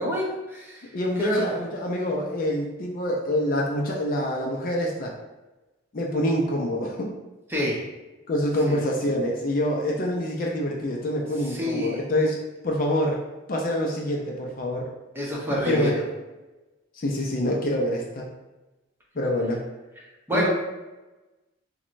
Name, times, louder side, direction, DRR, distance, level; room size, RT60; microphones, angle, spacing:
voice 1, 0.0-0.9 1.2-1.4 7.5-7.8 8.6-8.8 11.4-12.0 15.1-16.0 20.3-20.5, equal, 10° right, -4 dB, 0.7 m, -27 dB
voice 2, 0.9-5.1 5.9-7.1 8.3-13.2 13.5-14.9 15.7-15.9 17.0-18.3 19.2-19.6 20.3-20.5, left 1 dB, 40° left, -1 dB, 0.4 m, -26 dB
5.8 x 2.2 x 2.6 m, 1.1 s
head